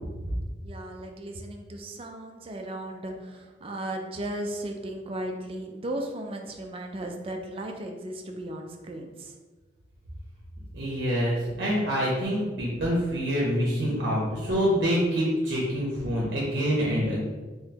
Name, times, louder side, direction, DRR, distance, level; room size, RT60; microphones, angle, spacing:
voice 1, 0.6-9.4, right 1 dB, 30° right, 3 dB, 0.4 m, -36 dB
voice 2, 10.7-17.3, equal, 70° right, -4 dB, 0.7 m, -26 dB
3.9 x 3.0 x 2.8 m, 1.3 s
head